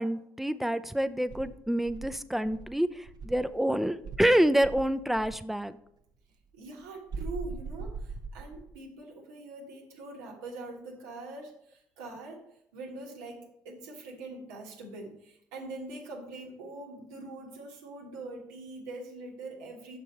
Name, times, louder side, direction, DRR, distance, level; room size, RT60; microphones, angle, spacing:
voice 1, 0.0-5.8, right 1 dB, ahead, 13 dB, 0.4 m, -27 dB
Insect, 1.3-3.6 4.0-5.5 7.1-8.8, right 4 dB, 50° right, 0.8 m, -40 dB
voice 2, 6.5-12.4 12.7-20.0, right 2 dB, 80° right, 1 dB, 1.4 m, -43 dB
6.3 x 5.3 x 4.3 m, 0.76 s
hypercardioid pair, 50°, 9 cm